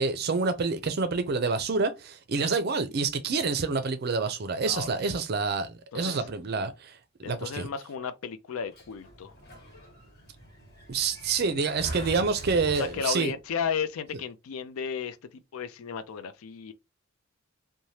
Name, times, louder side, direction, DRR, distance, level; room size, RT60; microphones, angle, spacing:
voice 1, 0.0-7.7 10.9-13.3, right 4 dB, 50° right, 0.5 m, -28 dB
voice 2, 4.6-5.2 5.9-6.2 7.2-9.3 12.7-16.7, left 6 dB, 85° left, 0.4 m, -34 dB
Sliding door, 8.7-13.4, right 1 dB, 50° left, 1.4 m, -42 dB
3.2 x 2.2 x 2.7 m
head